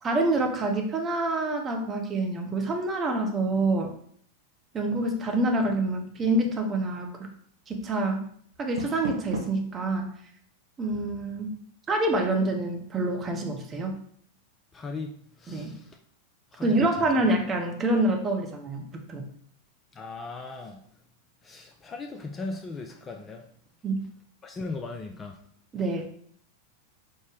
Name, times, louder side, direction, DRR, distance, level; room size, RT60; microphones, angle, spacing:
voice 1, 0.0-3.9 4.7-7.3 7.7-8.2 8.6-10.1 10.8-11.6 11.9-14.0 15.5-15.7 16.6-19.3 23.8-24.1 25.7-26.1, right 2 dB, 20° right, 2 dB, 0.7 m, -27 dB
Door, 8.5-9.7, right 3 dB, 55° right, 0.7 m, -35 dB
voice 2, 14.7-15.9 16.5-16.7 19.9-20.8 21.4-23.4 24.4-25.4, left 3 dB, 20° left, 4 dB, 0.3 m, -38 dB
5.1 x 2.1 x 3.4 m, 0.62 s
figure-of-eight pair, 90°, 0 cm